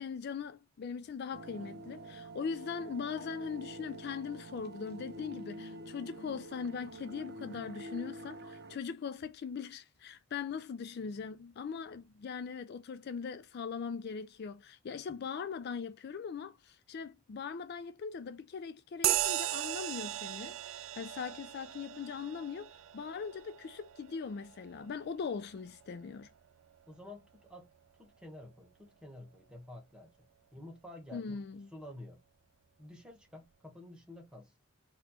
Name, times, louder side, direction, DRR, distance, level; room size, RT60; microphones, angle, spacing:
voice 1, 0.0-26.3 31.1-31.7, left 6 dB, 50° left, 0.3 m, -40 dB
sound 1, 1.3-8.8, right 1 dB, 50° right, 0.7 m, -47 dB
sound 2, 19.0-26.9, right 15 dB, 70° right, 0.3 m, -38 dB
voice 2, 26.9-27.7 28.0-30.1 30.5-31.4 31.7-32.2 32.8-34.5, left 1 dB, 5° right, 1.3 m, -50 dB
4.2 x 2.9 x 4.2 m
head